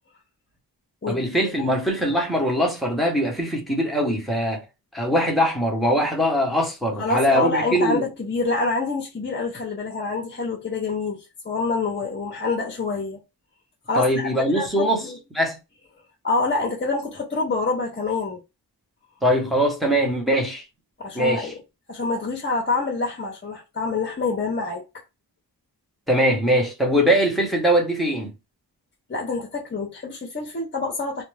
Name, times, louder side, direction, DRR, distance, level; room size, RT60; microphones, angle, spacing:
voice 1, 1.1-4.6 4.9-8.0 14.0-15.0 15.3-15.6 19.2-20.6 21.1-21.5 26.1-28.3, equal, ahead, 0.9 m, -21 dB
voice 2, 7.0-13.2 13.9-15.2 16.2-18.4 21.0-21.5 21.9-24.8 29.1-31.2, left 3 dB, 30° left, 0.6 m, -26 dB
2.4 x 2.2 x 3.1 m
wide cardioid pair, 105°, 39 cm